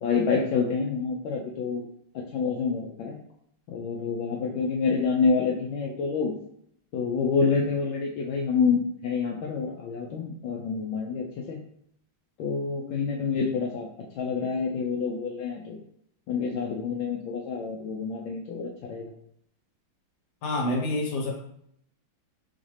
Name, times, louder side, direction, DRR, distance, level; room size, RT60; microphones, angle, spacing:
voice 1, 0.0-1.8 2.3-3.2 3.7-6.3 6.9-11.6 12.4-13.9 14.2-15.8 16.3-19.1, left 5 dB, 75° left, -2 dB, 1.4 m, -27 dB
voice 2, 20.4-21.3, left 1 dB, 60° left, 1 dB, 1.5 m, -27 dB
4.2 x 3.9 x 3.2 m, 0.70 s
omnidirectional pair, 2.2 m